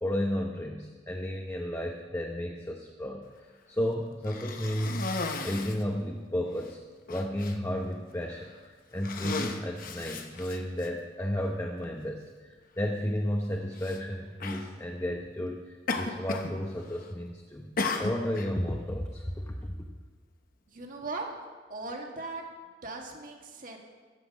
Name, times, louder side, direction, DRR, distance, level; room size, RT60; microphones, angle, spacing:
voice 1, 0.0-3.3 3.7-6.8 7.1-19.7, equal, 15° left, 1 dB, 0.8 m, -33 dB
Cough, 4.2-5.9 6.6-6.7 7.1-7.6 8.3-8.6 8.9-10.9 11.8-11.9 13.8-14.0 14.4-14.7 15.9-16.6 16.8-17.2 17.8-18.5, left 3 dB, 50° left, 1.0 m, -35 dB
voice 2, 20.7-21.3 21.7-22.4 22.8-23.8, right 3 dB, 45° right, 2 dB, 1.8 m, -38 dB
14.0 x 5.9 x 8.5 m, 1.5 s
head